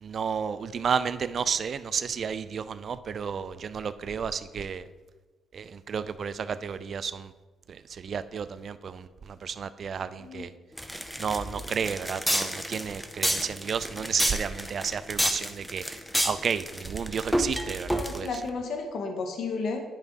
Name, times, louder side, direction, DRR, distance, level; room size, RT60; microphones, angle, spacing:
voice 1, 0.0-4.8 5.5-7.3 7.7-10.5 11.2-18.3, right 6 dB, 50° right, 13 dB, 0.4 m, -32 dB
sound 1, 10.8-18.4, equal, ahead, 0.7 m, -29 dB
voice 2, 17.9-19.8, left 4 dB, 65° left, 4 dB, 0.9 m, -33 dB
10.5 x 5.0 x 3.6 m, 1.3 s
cardioid pair, 90°, 0 cm